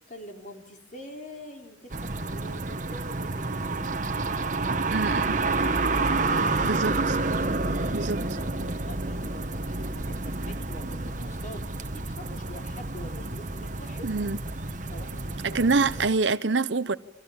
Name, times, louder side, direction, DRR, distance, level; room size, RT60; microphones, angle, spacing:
voice 1, 0.1-4.2 5.0-5.8 6.6-7.8 8.4-14.1 14.9-16.2, equal, 45° left, 4.1 m, -45 dB
sound 1, 1.9-16.1, right 3 dB, 45° right, 1.4 m, -29 dB
voice 2, 4.9-5.3 6.6-6.9 7.9-8.2 14.0-14.4 15.5-17.0, right 4 dB, 85° right, 0.9 m, -25 dB
29.5 x 25.0 x 7.3 m
head